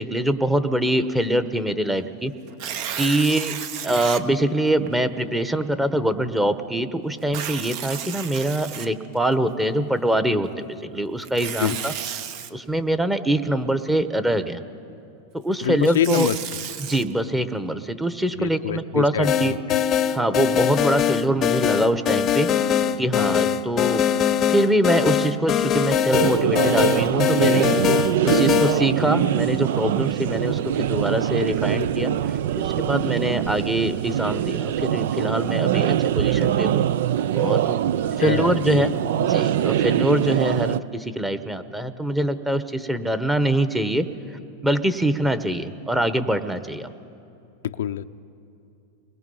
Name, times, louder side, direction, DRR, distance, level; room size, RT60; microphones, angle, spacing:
voice 1, 0.0-2.3 3.0-11.9 12.5-14.6 15.4-16.3 16.8-19.6 20.1-22.6 23.0-24.1 24.5-27.7 28.2-32.1 32.6-36.9 37.3-37.8 38.2-38.9 39.2-44.1 44.6-46.9, right 1 dB, 5° right, 10 dB, 1.0 m, -24 dB
Tearing, 2.5-4.2 4.9-5.0 7.2-9.3 11.2-12.5 15.6-17.0, right 9 dB, 55° right, 1.0 m, -32 dB
voice 2, 15.6-16.4 18.4-19.6 38.2-38.9 47.6-48.1, left 10 dB, 85° left, 10 dB, 0.6 m, -25 dB
sound 1, 19.2-28.8, left 9 dB, 35° left, 0.7 m, -22 dB
sound 2, 26.1-40.8, right 10 dB, 75° right, 0.5 m, -23 dB
30.0 x 21.0 x 5.5 m, 2.7 s
hypercardioid pair, 120°, 0 cm